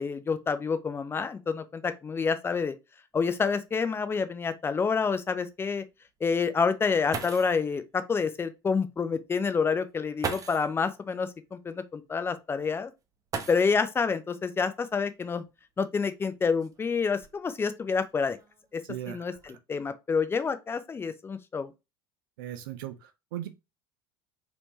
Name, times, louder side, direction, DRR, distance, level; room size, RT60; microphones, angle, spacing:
voice 1, 0.0-2.7 3.1-5.8 6.2-12.9 13.5-15.4 15.8-18.4 18.7-18.8 19.1-21.7, left 5 dB, 20° left, 0.5 m, -28 dB
sound 1, 6.8-6.9 7.1-7.7 8.9-9.0 10.2-10.8 13.3-14.0 15.4-15.5 16.2-17.7 18.4-18.7 19.1-19.5, right 5 dB, 25° right, 0.8 m, -38 dB
voice 2, 18.8-19.6 22.4-23.5, right 12 dB, 60° right, 0.6 m, -38 dB
4.3 x 2.8 x 3.0 m
figure-of-eight pair, 65°, 13 cm